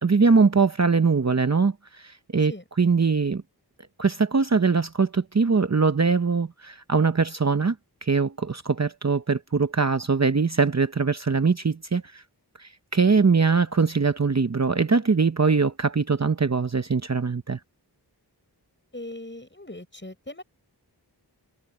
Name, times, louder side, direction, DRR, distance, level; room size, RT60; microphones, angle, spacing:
voice 1, 0.0-2.5 2.8-3.4 4.0-7.7 8.0-12.2 12.6-17.6, right 4 dB, 40° right, 0.8 m, -22 dB
voice 2, 18.9-20.4, left 1 dB, 25° left, 7.0 m, -39 dB
wide cardioid pair, 50°, 41 cm